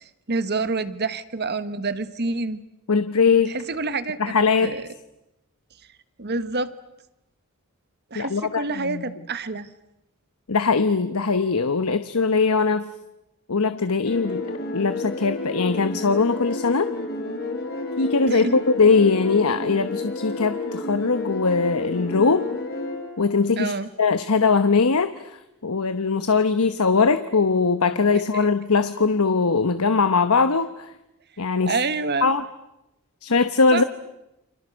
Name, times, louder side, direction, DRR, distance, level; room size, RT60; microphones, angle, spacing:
voice 1, 0.0-2.6 3.4-4.3 4.6-4.9 6.2-6.7 8.1-9.7 18.3-18.5 23.6-23.9 28.1-28.5 31.7-32.3 33.7-33.8, right 3 dB, 50° right, 13 dB, 1.4 m, -27 dB
voice 2, 2.9-3.5 4.2-4.7 8.1-9.0 10.5-12.9 13.5-14.4 14.7-16.9 18.0-22.5 23.2-23.7 24.0-25.4 25.6-30.9 31.4-31.7 32.2-32.4 33.2-33.8, left 4 dB, 75° left, 11 dB, 1.0 m, -21 dB
sound 1, 14.0-23.3, left 2 dB, 45° left, 3.6 m, -31 dB
30.0 x 26.5 x 6.4 m, 0.90 s
head